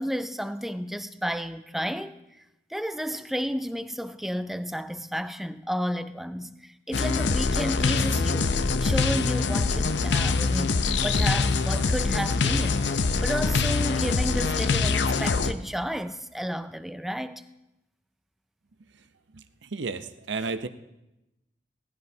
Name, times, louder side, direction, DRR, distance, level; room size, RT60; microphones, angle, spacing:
voice 1, 0.0-2.2 2.7-8.5 8.8-17.5, equal, ahead, 0.3 m, -32 dB
sound 1, 6.9-15.5, left 4 dB, 75° left, 0.6 m, -24 dB
voice 2, 19.3-20.7, right 4 dB, 85° right, 0.7 m, -33 dB
18.5 x 15.0 x 2.8 m
head